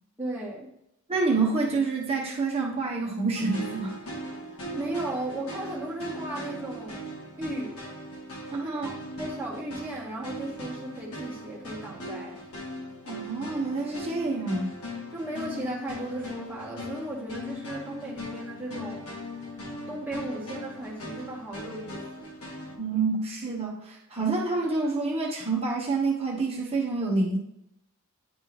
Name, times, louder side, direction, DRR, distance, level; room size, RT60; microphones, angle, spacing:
voice 1, 0.2-0.7 4.7-7.0 7.4-7.7 8.6-8.8 9.2-12.4 15.1-19.0 19.9-22.3, right 1 dB, 10° right, -5 dB, 1.6 m, -35 dB
voice 2, 1.1-4.0 8.5-8.9 13.1-14.7 22.8-27.4, right 3 dB, 30° right, -4 dB, 1.1 m, -27 dB
sound 1, 3.3-22.8, equal, 80° left, 1.7 m, -39 dB
10.0 x 3.4 x 3.1 m, 0.80 s
head